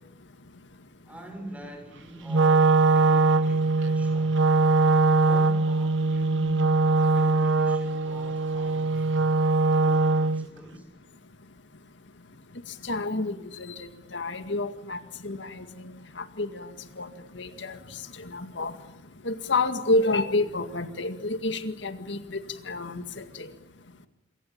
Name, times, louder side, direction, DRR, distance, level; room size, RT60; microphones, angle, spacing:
voice 1, 1.0-4.5 5.2-9.3 9.8-10.9, right 1 dB, 10° right, 4 dB, 6.8 m, -44 dB
Wind instrument woodwind instrument, 2.3-10.5, right 3 dB, 85° right, 1.0 m, -22 dB
voice 2, 12.8-15.7 16.2-16.7 17.0-17.1 17.4-17.8 18.3-18.7 19.2-22.4 22.7-23.5, left 2 dB, 75° left, 9 dB, 2.0 m, -29 dB
28.0 x 24.5 x 8.9 m, 0.83 s
head